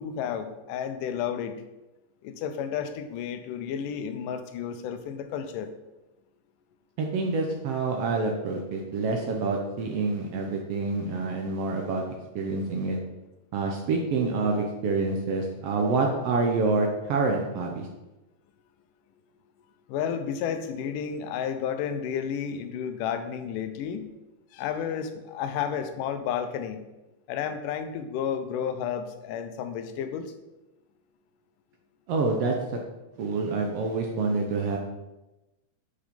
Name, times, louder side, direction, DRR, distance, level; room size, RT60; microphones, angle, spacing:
voice 1, 0.0-1.6 2.2-5.7 19.9-24.1 24.5-26.8 27.3-30.3, left 8 dB, 85° left, 9 dB, 2.2 m, -32 dB
voice 2, 7.0-13.0 13.5-17.9 32.1-32.8 33.2-34.8, right 3 dB, 80° right, 2 dB, 1.4 m, -27 dB
7.2 x 5.0 x 5.3 m, 1.0 s
omnidirectional pair, 3.7 m